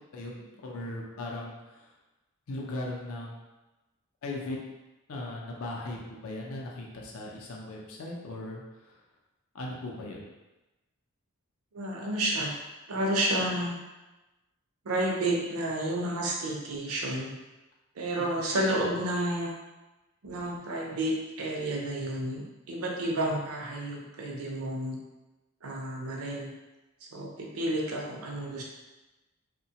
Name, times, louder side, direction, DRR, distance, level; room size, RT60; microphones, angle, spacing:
voice 1, 0.1-1.5 2.5-3.3 4.2-4.6 5.1-8.6 9.5-10.3, left 2 dB, 65° left, -2 dB, 0.5 m, -38 dB
voice 2, 11.7-12.5 12.9-13.8 14.9-17.4 18.0-19.5 20.2-25.0 25.6-26.5 27.1-28.6, right 1 dB, 70° right, -1 dB, 0.6 m, -31 dB
2.7 x 2.1 x 2.8 m, 1.1 s
head